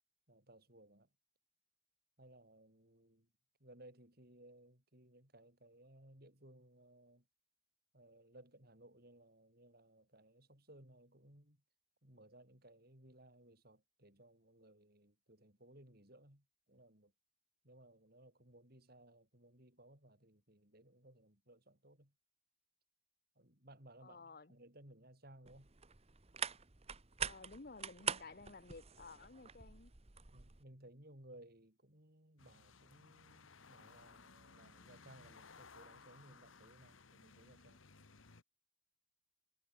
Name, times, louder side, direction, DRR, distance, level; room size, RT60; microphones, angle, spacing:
voice 1, 0.3-1.1 2.2-3.3 3.6-7.3 7.9-11.6 12.0-17.1 17.6-22.1 23.4-25.7 30.3-37.8, right 1 dB, 50° right, 5.9 m, -61 dB
voice 2, 24.0-24.5 27.2-29.9, left 3 dB, 50° left, 1.0 m, -54 dB
sound 1, 25.5-30.6, right 7 dB, 30° right, 1.1 m, -45 dB
sound 2, 32.4-38.4, left 4 dB, 85° left, 1.6 m, -60 dB
head